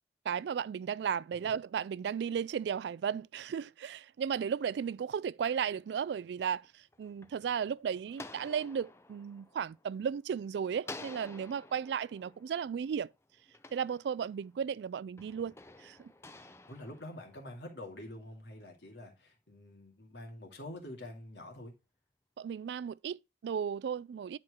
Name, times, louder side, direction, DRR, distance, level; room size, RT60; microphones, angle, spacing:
voice 1, 0.3-13.1 13.7-15.5 15.8-16.1 22.4-24.4, right 7 dB, 75° right, 0.3 m, -35 dB
sound 1, 6.6-10.4 10.8-14.6 15.2-17.8, left 2 dB, 15° left, 0.5 m, -51 dB
voice 2, 16.7-21.7, left 1 dB, 80° left, 2.4 m, -46 dB
10.5 x 4.4 x 3.6 m
head